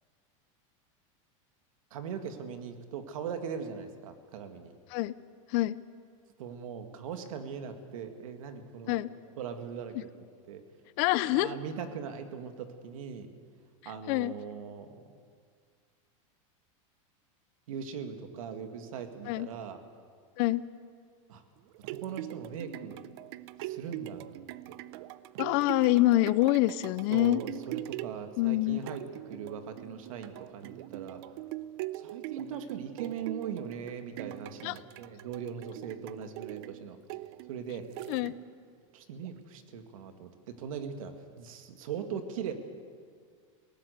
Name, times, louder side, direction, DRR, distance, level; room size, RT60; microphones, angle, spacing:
voice 1, 1.9-4.7 6.4-9.0 9.4-10.6 11.3-13.3 13.9-14.9 17.7-19.8 21.3-21.4 21.9-23.0 23.6-24.8 27.1-31.2 31.9-37.0 37.5-37.9 38.9-42.5, right 7 dB, 85° right, 7 dB, 2.1 m, -40 dB
voice 2, 11.0-11.5 14.1-14.3 19.3-19.5 20.4-20.6 25.4-27.4 28.4-28.8 34.6-34.8 38.1-38.4, left 17 dB, 45° left, 17 dB, 0.6 m, -26 dB
sound 1, 21.6-38.7 39.2-39.3, right 16 dB, 50° right, 0.6 m, -42 dB
19.5 x 18.0 x 8.1 m, 2.1 s
supercardioid pair, 165°, 17 cm